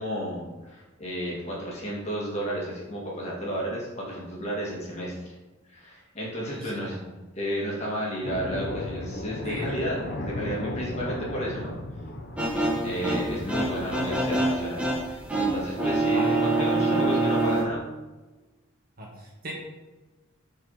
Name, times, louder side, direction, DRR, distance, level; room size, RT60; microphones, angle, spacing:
voice 1, 0.0-5.2 5.7-7.0 7.4-11.8 12.8-17.8, equal, 30° left, -4 dB, 2.0 m, -32 dB
voice 2, 6.5-7.0 9.4-9.7 16.1-17.2 19.0-19.5, right 1 dB, 45° right, -3 dB, 1.9 m, -35 dB
sound 1, 8.2-14.5, left 1 dB, 50° left, 0.8 m, -36 dB
sound 2, 12.4-17.6, right 2 dB, 5° right, 1.3 m, -26 dB
8.9 x 4.6 x 4.0 m, 1.2 s
head